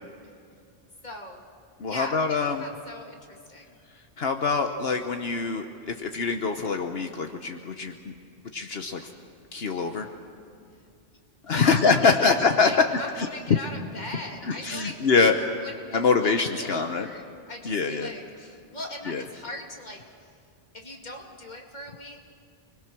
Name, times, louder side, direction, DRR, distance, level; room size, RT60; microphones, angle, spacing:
voice 1, 1.0-1.4 1.9-3.8 11.4-15.0 15.6-20.3 20.7-22.3, left 1 dB, 40° left, 0 dB, 2.5 m, -40 dB
voice 2, 1.8-2.7 4.2-8.1 8.5-9.0 9.5-10.1 11.5-12.7 13.2-13.3 14.4-15.4 15.9-17.1 17.6-18.1 19.1-19.2, left 4 dB, 65° left, 5 dB, 1.2 m, -24 dB
29.5 x 21.0 x 6.2 m, 2.4 s
omnidirectional pair, 1.1 m